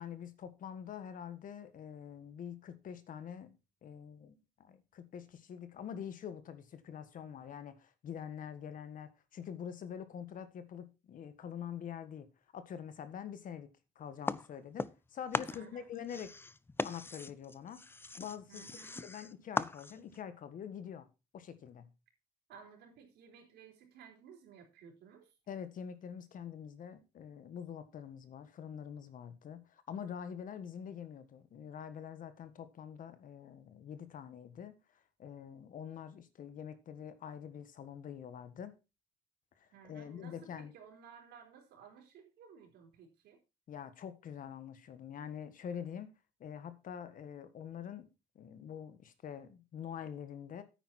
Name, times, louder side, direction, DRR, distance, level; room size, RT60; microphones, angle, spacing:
voice 1, 0.0-3.6 3.8-12.3 12.5-13.7 13.9-16.3 16.8-17.8 18.2-18.6 19.0-21.1 21.3-21.9 25.5-34.7 35.2-38.7 39.6-40.7 43.7-46.1 46.4-48.1 48.3-50.6, left 8 dB, 50° left, 1.5 m, -45 dB
sound 1, 14.3-15.1 15.3-20.2, left 3 dB, 15° left, 0.5 m, -39 dB
voice 2, 15.5-15.9 18.5-19.1 22.5-25.3 39.7-43.4, right 6 dB, 75° right, 4.2 m, -56 dB
9.5 x 9.1 x 4.2 m
cardioid pair, 110°, 17 cm